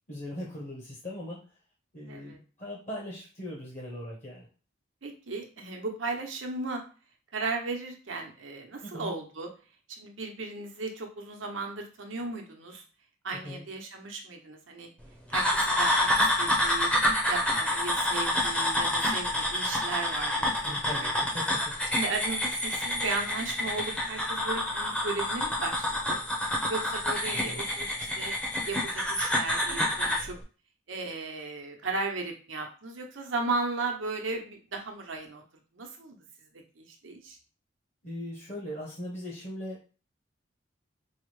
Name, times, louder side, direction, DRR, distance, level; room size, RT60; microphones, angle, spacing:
voice 1, 0.1-1.4 1.9-4.5 8.8-9.1 13.4-13.6 20.6-21.7 27.5-27.6 38.0-39.8, left 1 dB, 40° left, -3 dB, 1.0 m, -39 dB
voice 2, 2.1-2.4 5.0-6.8 7.3-9.5 9.9-12.8 13.2-14.9 15.3-16.9 17.3-21.3 21.9-26.2 26.7-28.3 28.7-30.4 30.9-35.4 35.7-36.2 36.8-37.4, right 3 dB, 90° right, 3 dB, 0.8 m, -36 dB
sound 1, 15.3-30.3, left 1 dB, 5° left, 0.6 m, -28 dB
4.7 x 2.1 x 3.1 m, 0.36 s
head